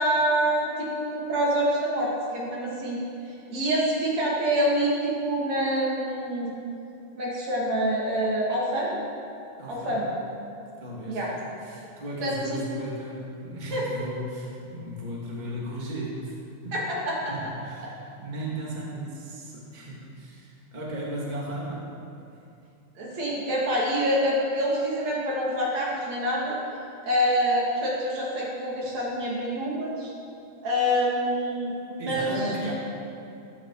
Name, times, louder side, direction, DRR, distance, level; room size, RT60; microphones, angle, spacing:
voice 1, 0.0-3.0 3.5-6.6 7.1-9.0 9.7-10.1 11.1-11.3 12.2-12.6 13.7-13.8 16.7-17.3 23.0-26.6 27.0-30.1 30.6-32.3 32.6-32.7, equal, 45° right, -4 dB, 3.1 m, -26 dB
voice 2, 9.5-10.0 10.8-11.2 11.6-16.3 16.6-16.8 17.2-21.8 32.0-32.7, right 1 dB, 65° right, -5 dB, 0.4 m, -35 dB
14.5 x 14.0 x 4.9 m, 2.6 s
omnidirectional pair, 5.6 m